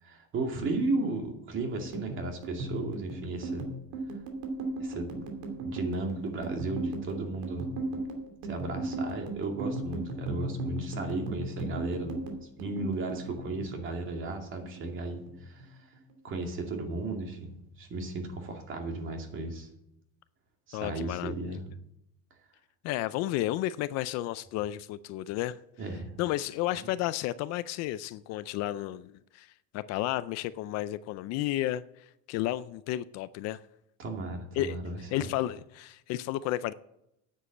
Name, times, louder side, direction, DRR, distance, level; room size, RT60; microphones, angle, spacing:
voice 1, 0.0-3.7 4.8-7.7 8.5-12.3 12.6-15.9 16.2-17.5 17.8-19.7 20.7-21.6 25.8-26.1 26.7-26.9 34.0-35.3, right 2 dB, 35° right, 2.4 m, -35 dB
sound 1, 1.8-14.3 14.6-15.7 15.9-16.3 16.6-17.3, right 2 dB, 80° right, 2.9 m, -36 dB
voice 2, 20.7-21.6 22.8-25.6 26.2-33.6 34.6-34.8 35.1-36.7, left 14 dB, 50° left, 0.5 m, -32 dB
9.8 x 7.6 x 7.8 m
cardioid pair, 160°, 34 cm